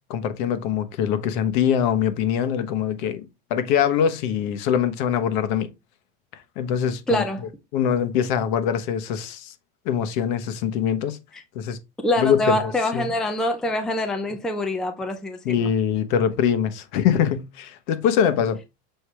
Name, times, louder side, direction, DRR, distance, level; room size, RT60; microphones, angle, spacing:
voice 1, 0.1-5.7 6.3-7.2 7.7-9.5 9.8-11.2 11.5-11.8 12.2-13.1 15.4-18.6, left 8 dB, 55° left, 1.1 m, -23 dB
voice 2, 7.1-7.5 11.3-11.4 12.0-15.7, left 1 dB, ahead, 0.5 m, -25 dB
6.6 x 4.6 x 3.3 m
supercardioid pair, 165°, 29 cm